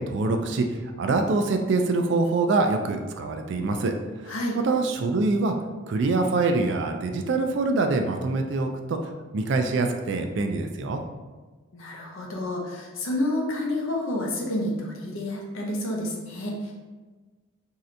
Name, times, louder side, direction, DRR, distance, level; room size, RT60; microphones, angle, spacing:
voice 1, 0.0-3.9 4.2-5.5 5.9-9.0 9.3-11.0, right 3 dB, 55° right, 5 dB, 0.3 m, -25 dB
voice 2, 11.7-16.7, left 1 dB, 75° left, -1 dB, 0.7 m, -29 dB
3.2 x 2.7 x 2.5 m, 1.3 s
head